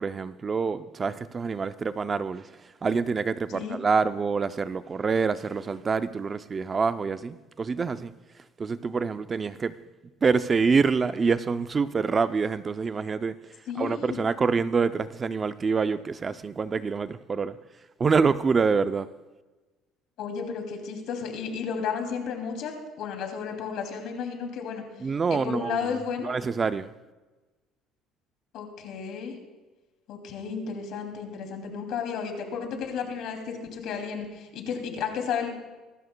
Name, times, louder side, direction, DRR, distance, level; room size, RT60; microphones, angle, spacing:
voice 1, 0.0-8.1 8.6-9.7 10.2-13.4 13.8-17.6 18.0-19.1 25.0-26.9, right 5 dB, 25° right, 0.4 m, -26 dB
voice 2, 13.7-14.2 20.2-24.8 25.3-26.3 28.5-29.4 30.1-35.5, left 6 dB, 65° left, 2.6 m, -33 dB
24.5 x 12.5 x 2.2 m
cardioid pair, 125°, 0 cm